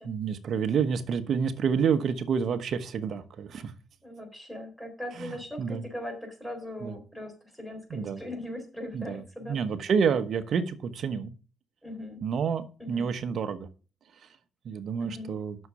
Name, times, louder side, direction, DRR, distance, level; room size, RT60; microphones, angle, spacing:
voice 1, 0.0-3.7 5.2-5.8 6.8-6.9 7.9-8.2 8.9-11.3 12.2-13.7 14.6-15.6, right 6 dB, 60° right, 11 dB, 1.1 m, -29 dB
voice 2, 4.0-9.6 11.8-12.2 12.8-13.1 15.0-15.3, left 1 dB, 5° left, 4 dB, 4.1 m, -40 dB
7.9 x 6.5 x 6.9 m, 0.37 s
cardioid pair, 90°, 0 cm